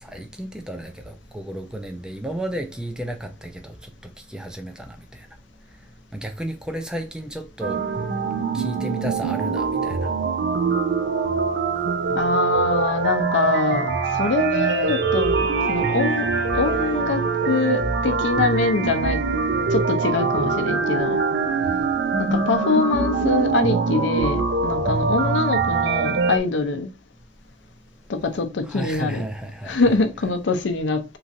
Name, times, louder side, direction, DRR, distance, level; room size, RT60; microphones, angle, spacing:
voice 1, 0.0-5.3 6.1-7.8 8.5-10.1 21.6-21.9 24.8-25.3 28.7-29.8, right 1 dB, 5° right, 0.3 m, -33 dB
sound 1, 7.6-26.4, right 4 dB, 75° right, 0.5 m, -23 dB
voice 2, 12.1-16.3 16.5-19.2 19.7-21.2 22.2-26.9 28.1-29.2 29.7-31.0, left 3 dB, 85° left, 0.5 m, -24 dB
3.0 x 2.4 x 2.6 m
head